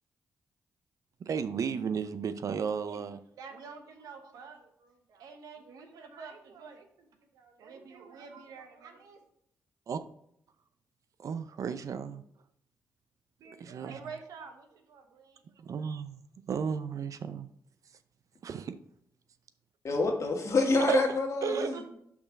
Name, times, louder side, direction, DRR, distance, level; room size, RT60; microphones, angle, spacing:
voice 1, 1.3-3.2 9.9-10.0 11.2-12.2 13.6-14.1 15.6-16.2 16.5-17.5 18.4-18.7 20.9-21.0 21.4-21.7, right 6 dB, 65° right, 0.5 m, -33 dB
voice 2, 3.4-7.1 7.3-9.2 13.4-15.4 21.5-21.8, right 5 dB, 85° right, 1.0 m, -47 dB
voice 3, 19.8-21.8, left 3 dB, 60° left, 1.8 m, -27 dB
5.6 x 4.5 x 5.9 m
supercardioid pair, 55°, 6 cm